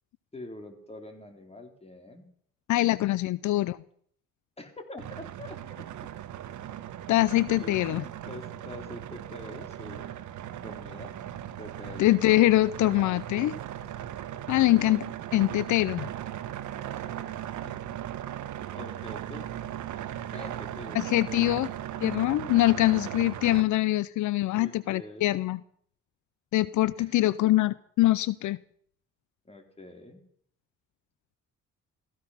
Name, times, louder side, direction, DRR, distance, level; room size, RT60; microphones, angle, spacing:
voice 1, 0.3-2.3 4.6-5.8 7.6-10.1 10.6-11.2 11.6-12.2 12.8-13.5 16.9-17.3 17.6-17.9 18.7-19.6 20.3-21.1 21.3-21.9 24.5-25.3 27.0-27.5 29.5-30.2, left 2 dB, 20° left, 5 dB, 3.6 m, -45 dB
voice 2, 2.7-3.8 7.1-8.0 12.0-13.5 14.5-16.1 20.9-21.7 22.0-25.6 26.5-28.6, left 16 dB, 75° left, 18 dB, 0.6 m, -24 dB
sound 1, 5.0-23.6, right 11 dB, 75° right, 1.3 m, -38 dB
16.5 x 15.0 x 5.7 m, 0.62 s
cardioid pair, 90°, 30 cm